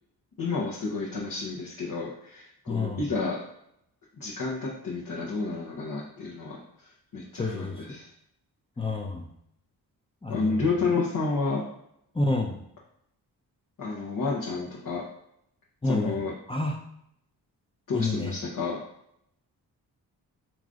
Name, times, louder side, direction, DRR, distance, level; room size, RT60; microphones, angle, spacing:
voice 1, 0.4-3.4 4.2-8.1 10.3-11.6 13.8-15.0 15.8-16.3 17.9-18.8, left 3 dB, 55° left, -5 dB, 1.1 m, -30 dB
voice 2, 2.7-3.0 7.4-7.8 8.8-9.3 10.2-10.4 12.1-12.6 15.8-16.2 16.5-16.8 17.9-18.3, left 2 dB, 15° left, 1 dB, 0.6 m, -28 dB
3.8 x 3.1 x 3.7 m, 0.74 s
cardioid pair, 60°, 40 cm